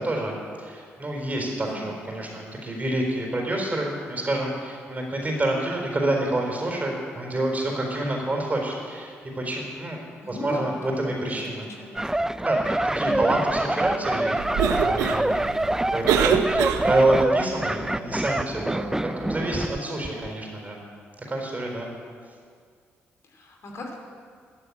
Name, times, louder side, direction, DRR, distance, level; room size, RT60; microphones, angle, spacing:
voice 1, 0.0-10.0 10.3-11.7 12.4-14.3 14.7-15.4 15.9-20.8 21.3-21.9, right 1 dB, 30° right, 0 dB, 4.3 m, -27 dB
voice 2, 1.6-2.4 10.2-12.2 13.0-13.5 23.2-23.9, equal, 60° left, 1 dB, 2.6 m, -39 dB
sound 1, 12.0-19.8 20.0-20.3, right 1 dB, 10° right, 0.4 m, -26 dB
Cough, 14.4-17.3, right 9 dB, 85° right, 0.7 m, -25 dB
13.5 x 7.7 x 8.6 m, 2.1 s
supercardioid pair, 55°, 5 cm